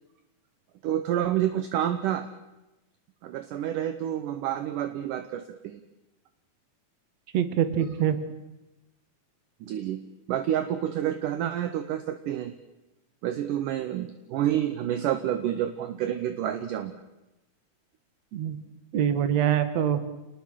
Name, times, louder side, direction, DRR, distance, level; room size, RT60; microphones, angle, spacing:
voice 1, 0.8-2.3 3.2-5.8 9.6-10.0 10.3-12.5 13.2-16.9, right 11 dB, 70° right, 10 dB, 2.3 m, -29 dB
voice 2, 7.3-8.2 18.3-18.6 18.9-20.0, right 9 dB, 55° right, 11 dB, 2.4 m, -24 dB
28.5 x 20.0 x 6.4 m, 0.98 s
omnidirectional pair, 4.3 m